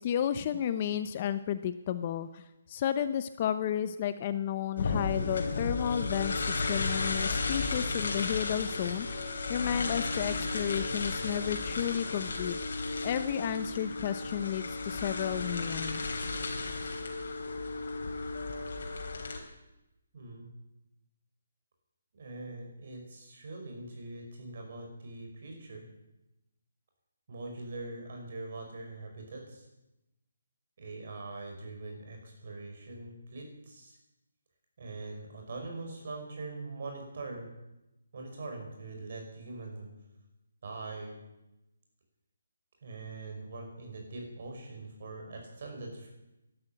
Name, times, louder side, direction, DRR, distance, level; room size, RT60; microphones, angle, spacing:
voice 1, 0.0-9.2 9.5-12.6 13.0-16.0, left 9 dB, 25° left, 12 dB, 0.5 m, -32 dB
sound 1, 4.8-19.4, left 3 dB, 55° left, 3.8 m, -34 dB
voice 2, 20.1-20.5 22.1-25.9 27.3-29.7 30.8-34.0 34.8-37.5 38.1-39.9 40.6-41.2 42.8-46.1, right 2 dB, 40° right, 2 dB, 5.5 m, -42 dB
13.0 x 12.0 x 8.9 m, 0.95 s
hypercardioid pair, 175°, 0 cm